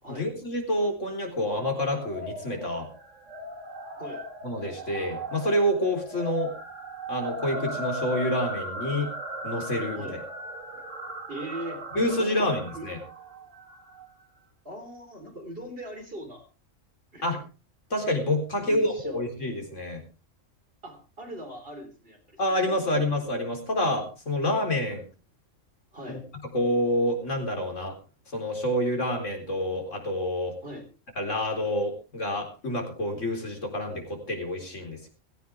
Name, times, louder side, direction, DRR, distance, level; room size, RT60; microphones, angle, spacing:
voice 1, 0.2-2.9 4.4-6.5 7.1-9.1 9.4-10.2 11.9-13.0 17.2-17.4 17.9-20.0 22.4-25.0 26.1-26.2 26.5-27.9 28.3-30.5 31.2-35.1, left 1 dB, 70° left, 3 dB, 4.5 m, -28 dB
sound 1, 1.6-14.1, right 1 dB, 70° right, 2.8 m, -37 dB
voice 2, 11.3-11.8 12.2-12.9 14.6-16.4 17.1-17.3 18.6-19.2 20.8-22.4 22.7-23.1 25.9-26.2 30.6-30.9, equal, 45° right, 4 dB, 4.3 m, -40 dB
17.0 x 15.5 x 3.6 m, 0.34 s
omnidirectional pair, 1.3 m